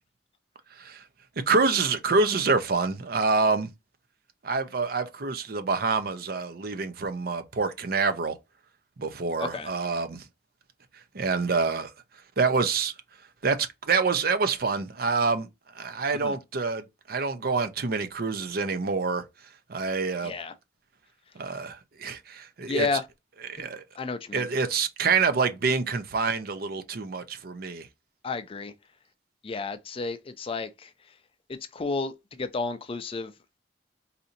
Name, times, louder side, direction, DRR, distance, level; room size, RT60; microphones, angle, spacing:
voice 1, 1.5-3.7 4.4-8.3 9.0-10.2 11.1-11.9 12.4-12.9 13.4-15.5 15.7-19.2 19.7-20.3 21.4-22.9 23.4-23.8 24.3-27.9, right 4 dB, 55° right, 0.6 m, -26 dB
voice 2, 9.4-9.7 16.1-16.4 20.2-20.5 22.7-23.0 23.6-23.7 24.0-24.5 28.2-28.7 29.4-30.9 31.5-33.3, left 4 dB, 30° left, 0.4 m, -32 dB
4.1 x 2.7 x 2.6 m
head